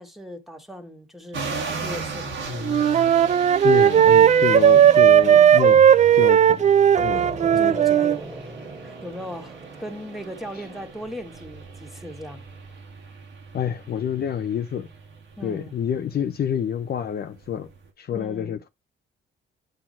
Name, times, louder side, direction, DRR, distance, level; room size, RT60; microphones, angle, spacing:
voice 1, 0.0-2.7 5.2-5.6 7.1-8.5 8.8-12.5 15.4-15.7 18.1-18.6, equal, ahead, 1.9 m, -38 dB
sound 1, 1.3-17.9, right 3 dB, 75° right, 2.2 m, -38 dB
Wind instrument woodwind instrument, 2.6-8.2, right 9 dB, 35° right, 0.4 m, -16 dB
voice 2, 3.6-5.9 6.1-6.6 7.0-7.8 13.5-14.9 15.4-17.7 18.0-18.7, left 8 dB, 50° left, 0.7 m, -28 dB
sound 2, 7.0-12.3, right 3 dB, 15° right, 1.1 m, -39 dB
9.2 x 4.4 x 4.2 m
cardioid pair, 90°, 20 cm